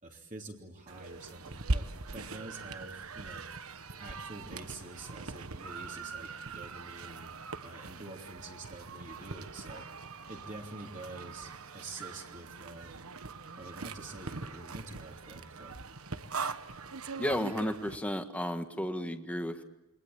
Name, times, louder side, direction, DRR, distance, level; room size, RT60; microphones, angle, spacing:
voice 1, 0.0-3.5 4.0-7.3 7.6-9.9 10.3-12.9 13.5-15.8, right 2 dB, 35° right, 1 dB, 3.1 m, -47 dB
sound 1, 0.9-18.0, right 3 dB, 70° right, 1.4 m, -41 dB
voice 2, 17.2-19.6, equal, 5° left, 6 dB, 1.7 m, -33 dB
28.5 x 23.0 x 8.8 m, 1.0 s
head